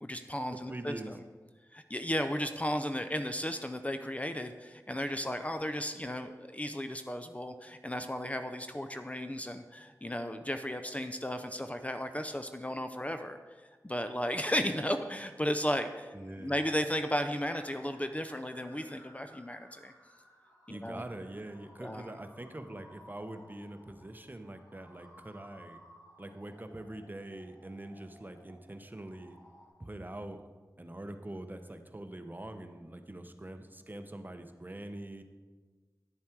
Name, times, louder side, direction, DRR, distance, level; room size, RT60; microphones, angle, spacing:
voice 1, 0.0-1.1 1.7-19.9 20.7-21.0 21.8-22.1, equal, 20° left, 8 dB, 0.6 m, -35 dB
voice 2, 0.7-1.2 16.1-16.6 20.7-25.8 26.2-29.4 29.8-30.4 30.8-35.2, right 1 dB, 25° right, 8 dB, 0.9 m, -44 dB
sound 1, 15.9-29.7, equal, 55° left, 2.7 m, -59 dB
10.0 x 7.2 x 4.6 m, 1.4 s
cardioid pair, 40°, 7 cm